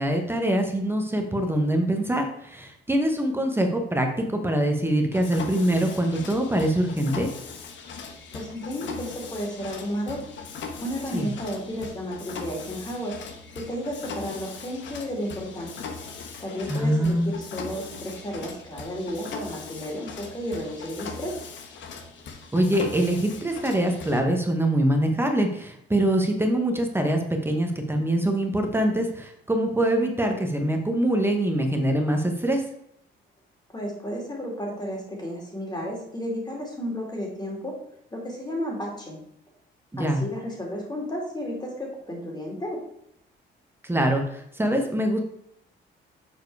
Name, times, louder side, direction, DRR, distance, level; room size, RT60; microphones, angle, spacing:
voice 1, 0.0-7.3 11.1-11.3 16.7-17.3 22.5-32.6 39.9-40.2 43.8-45.2, right 1 dB, 10° right, 3 dB, 1.0 m, -24 dB
Mechanisms, 5.1-24.2, left 5 dB, 70° left, 1.2 m, -40 dB
voice 2, 8.3-10.2 10.8-13.1 13.5-15.7 16.4-21.4 33.7-37.8 38.1-39.2 40.0-42.8, equal, 20° left, -1 dB, 2.6 m, -32 dB
6.8 x 4.7 x 4.7 m, 0.75 s
cardioid pair, 90°, 20 cm